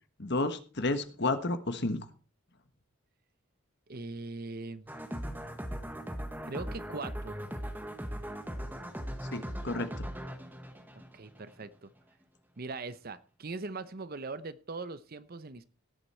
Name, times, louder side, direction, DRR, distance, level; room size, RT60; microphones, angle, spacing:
voice 1, 0.2-2.0 9.3-10.1, left 2 dB, 50° left, 9 dB, 1.3 m, -31 dB
voice 2, 3.9-4.9 6.5-7.4 10.9-11.9 12.6-15.7, right 3 dB, 45° right, 14 dB, 0.7 m, -40 dB
sound 1, 4.9-11.6, equal, 10° right, 1.3 m, -39 dB
17.5 x 8.1 x 4.3 m, 0.37 s
head